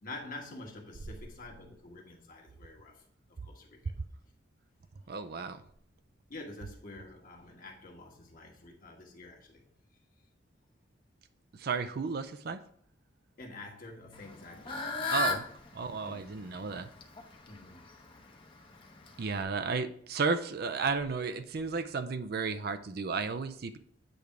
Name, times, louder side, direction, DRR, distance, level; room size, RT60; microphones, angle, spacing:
voice 1, 0.0-3.0 3.3-3.9 6.3-9.6 13.4-15.2 16.0-16.5 17.5-17.8, left 2 dB, 45° left, 0 dB, 1.4 m, -48 dB
voice 2, 5.1-5.6 11.5-12.6 15.1-15.4 15.7-16.9 19.2-23.8, right 4 dB, 50° right, 11 dB, 0.5 m, -33 dB
Fowl / Bird, 14.1-19.4, left 3 dB, 25° left, 0.8 m, -37 dB
8.5 x 3.4 x 4.8 m, 0.63 s
head